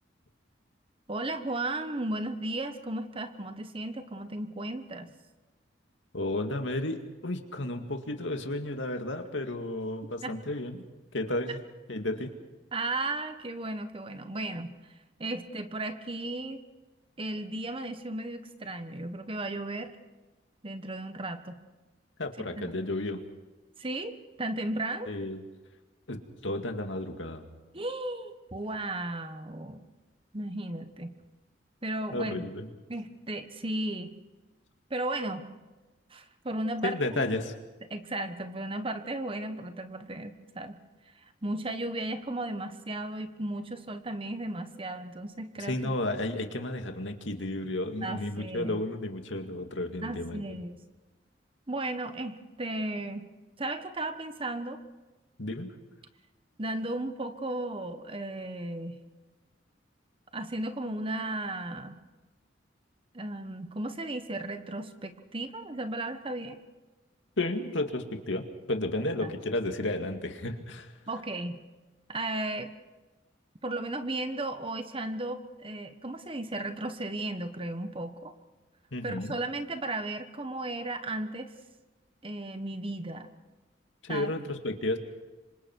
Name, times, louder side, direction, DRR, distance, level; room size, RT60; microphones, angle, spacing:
voice 1, 1.1-5.1 10.2-10.4 12.7-14.7 15.2-16.6 17.2-20.0 20.6-21.6 22.6-22.7 23.8-25.1 27.7-29.9 30.3-31.2 31.8-32.5 32.9-34.2 34.9-35.5 36.1-37.4 37.9-40.8 41.4-46.0 48.0-48.8 50.0-50.8 51.7-53.3 53.6-54.8 56.6-59.0 60.3-62.0 63.1-66.6 69.2-69.3 71.1-71.6 72.1-72.7 73.6-78.3 79.0-81.5 82.2-83.3 84.1-84.3, right 2 dB, 30° right, 9 dB, 1.3 m, -35 dB
voice 2, 6.1-10.8 11.1-11.6 11.9-12.3 22.2-23.2 25.1-25.4 26.1-27.4 32.1-32.7 36.8-37.5 45.6-50.6 55.4-55.7 67.4-70.9 78.9-79.4 84.0-85.0, left 1 dB, 85° left, 5 dB, 2.2 m, -32 dB
26.5 x 25.0 x 4.7 m, 1.2 s
head